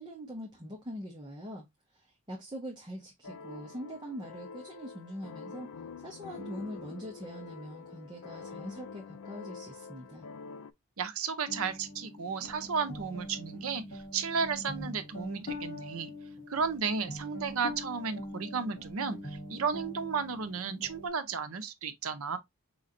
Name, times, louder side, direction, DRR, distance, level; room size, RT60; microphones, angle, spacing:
voice 1, 0.0-1.7 2.0-5.7 6.0-10.3, equal, 20° right, 0.8 m, -43 dB
sound 1, 3.2-10.7, left 5 dB, 90° left, 0.4 m, -46 dB
voice 2, 11.0-16.1 16.5-22.4, right 5 dB, 70° right, 0.7 m, -33 dB
sound 2, 11.5-21.1, left 1 dB, 35° left, 1.8 m, -43 dB
4.9 x 3.1 x 2.5 m
head